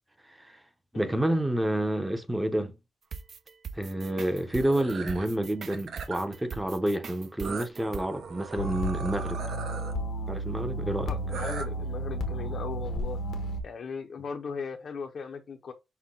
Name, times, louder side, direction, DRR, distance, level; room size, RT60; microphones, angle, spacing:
voice 1, 0.3-0.6 0.9-2.7 3.7-9.4 10.3-11.1, right 1 dB, 10° right, 0.7 m, -29 dB
sound 1, 3.1-8.0, right 6 dB, 55° right, 0.4 m, -41 dB
sound 2, 4.5-5.3 5.7-6.3 7.4-9.9 11.3-11.6, right 5 dB, 75° right, 0.8 m, -39 dB
sound 3, 8.6-13.6, right 1 dB, 90° left, 0.8 m, -32 dB
voice 2, 11.1-13.2 13.6-15.7, left 5 dB, 55° left, 0.6 m, -38 dB
5.7 x 2.1 x 3.7 m
cardioid pair, 105°, 0 cm